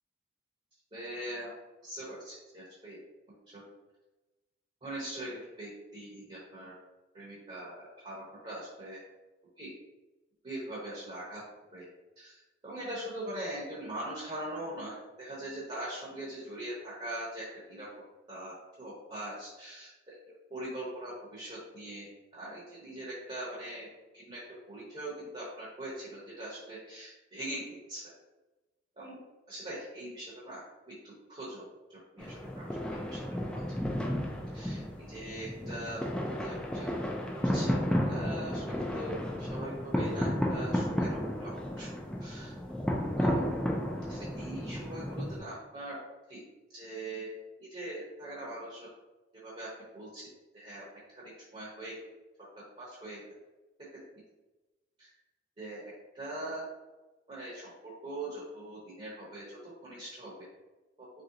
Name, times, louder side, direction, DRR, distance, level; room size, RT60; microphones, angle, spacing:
voice 1, 0.9-1.5 1.8-3.0 4.8-6.7 7.1-7.7 8.0-9.0 9.6-9.7 10.4-11.4 11.7-11.8 12.2-12.4 12.6-17.9 18.3-19.9 20.5-22.1 22.3-23.9 24.1-24.4 24.7-28.0 29.0-29.2 29.5-30.6 30.9-31.6 32.1-32.3 32.6-33.2 34.5-34.8 35.1-36.0 36.4-37.7 38.1-38.6 38.9-41.9 42.2-42.5 43.1-43.4 44.1-46.0 46.3-46.4 46.7-47.3 47.6-48.9 49.4-49.7 49.9-50.3 50.5-50.9 51.1-51.2 51.5-51.9 52.8-53.2 55.0-55.1 55.6-55.8 56.1-56.7 57.3-60.3, right 1 dB, 30° right, -7 dB, 0.9 m, -41 dB
sound 1, 32.2-45.4, equal, 5° left, 0.4 m, -33 dB
3.1 x 2.7 x 3.8 m, 1.1 s
head